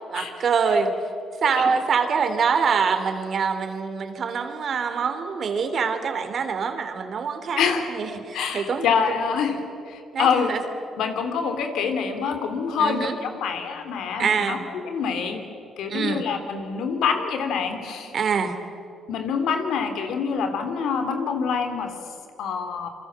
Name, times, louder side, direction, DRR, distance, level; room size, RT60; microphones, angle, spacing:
voice 1, 0.1-0.9 1.4-7.6 7.9-9.2 10.1-10.6 12.8-13.1 14.2-14.6 15.9-16.2 18.1-18.6, right 6 dB, 55° right, 8 dB, 2.9 m, -25 dB
voice 2, 7.6-7.9 8.3-9.6 9.9-10.5 11.0-15.5 15.8-18.1 19.1-21.9 22.4-22.9, left 6 dB, 80° left, 6 dB, 3.2 m, -26 dB
28.0 x 23.5 x 7.6 m, 2.6 s
cardioid pair, 90°, 0 cm